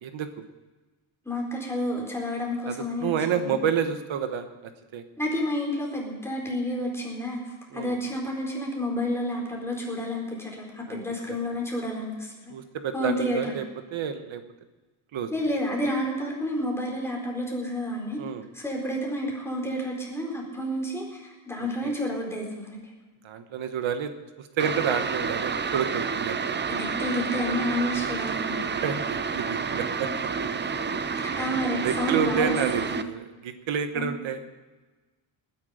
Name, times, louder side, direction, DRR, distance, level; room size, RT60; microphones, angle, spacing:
voice 1, 1.2-3.6 5.2-12.5 12.9-13.5 15.3-18.2 18.5-22.8 26.7-28.8 31.2-33.0 33.9-34.1, equal, 5° left, -2 dB, 4.3 m, -30 dB
voice 2, 2.7-5.0 7.7-8.0 10.9-11.0 11.3-11.4 12.5-13.7 13.9-14.4 15.1-15.3 18.2-18.4 21.6-21.9 23.2-24.1 24.4-26.6 28.8-30.1 31.8-34.4, right 7 dB, 65° right, 9 dB, 1.3 m, -29 dB
sound 1, 24.6-33.0, right 5 dB, 20° right, 0.6 m, -29 dB
19.5 x 10.5 x 5.1 m, 1.2 s
cardioid pair, 150°, 50 cm